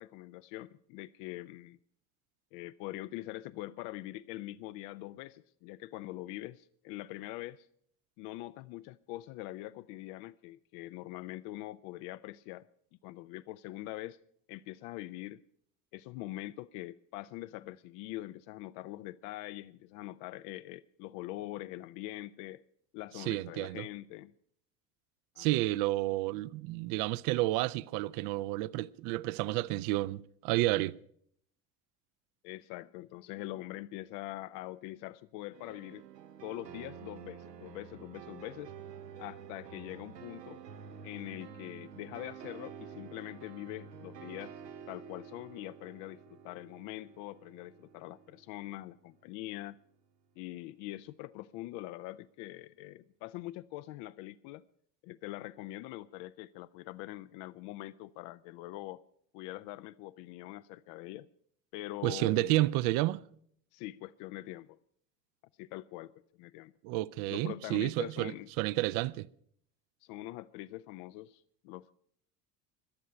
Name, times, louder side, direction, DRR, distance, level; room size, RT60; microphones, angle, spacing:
voice 1, 0.0-1.8 2.5-7.7 8.2-12.7 13.0-14.2 14.5-15.4 15.9-22.6 22.9-24.3 25.4-25.5 32.4-36.0 36.4-38.7 39.2-40.6 41.0-44.6 44.9-49.8 50.4-54.6 55.0-59.0 59.3-61.3 61.7-62.6 63.7-64.8 65.6-66.1 66.4-66.7 67.3-68.5 70.0-71.9, left 16 dB, 45° left, 0.5 m, -43 dB
voice 2, 23.2-23.9 25.4-31.0 62.0-63.2 66.8-69.3, right 17 dB, 45° right, 0.6 m, -31 dB
sound 1, 35.5-49.4, right 7 dB, 80° right, 1.0 m, -49 dB
17.5 x 12.0 x 5.6 m
figure-of-eight pair, 65°, 49 cm